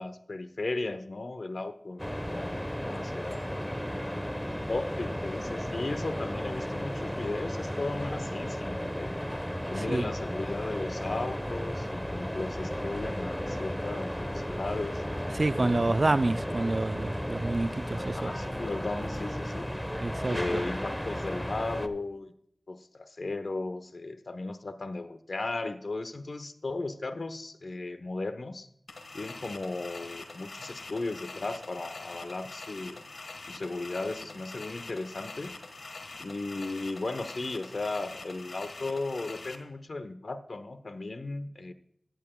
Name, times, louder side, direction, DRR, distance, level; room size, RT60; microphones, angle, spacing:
voice 1, 0.0-3.6 4.1-9.2 9.7-15.0 15.6-16.0 18.0-19.7 20.3-22.3 22.7-28.7 29.1-33.0 33.5-35.5 36.2-41.7, left 2 dB, 70° left, 1.0 m, -36 dB
sound 1, 2.0-21.9, equal, 10° left, 1.0 m, -34 dB
voice 2, 15.3-18.3 20.0-20.6, right 2 dB, 50° right, 0.4 m, -28 dB
sound 2, 28.9-39.6, left 3 dB, 85° left, 1.5 m, -44 dB
16.5 x 11.0 x 2.3 m
cardioid pair, 40°, 0 cm